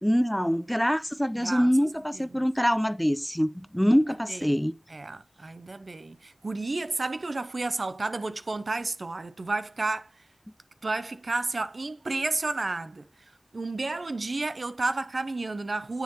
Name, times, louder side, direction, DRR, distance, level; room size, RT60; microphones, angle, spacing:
voice 1, 0.0-4.7, equal, 5° left, 0.4 m, -24 dB
voice 2, 1.4-1.7 2.1-2.2 3.8-3.9 4.3-4.6 4.9-10.1 10.8-13.1 13.5-16.0, right 3 dB, 70° right, 0.5 m, -31 dB
9.7 x 3.7 x 2.9 m
wide cardioid pair, 50°, 0 cm